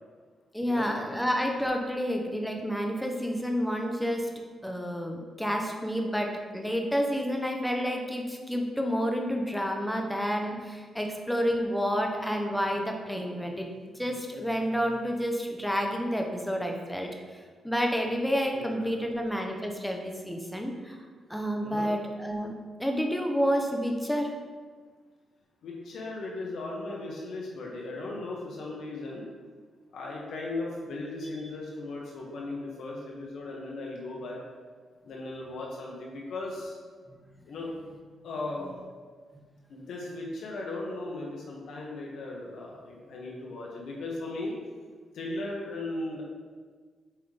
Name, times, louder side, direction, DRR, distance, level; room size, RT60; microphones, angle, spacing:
voice 1, 0.5-4.3 4.6-13.7 13.9-17.1 17.6-21.0 21.3-22.5 22.8-24.4, equal, ahead, 2 dB, 0.7 m, -29 dB
voice 2, 18.5-19.0 21.6-21.9 25.6-29.3 29.9-34.4 35.0-36.8 37.4-37.7 38.2-38.7 39.7-44.5 45.1-46.2, left 2 dB, 70° left, -3 dB, 1.1 m, -37 dB
7.9 x 3.7 x 3.3 m, 1.5 s
cardioid pair, 135°, 0 cm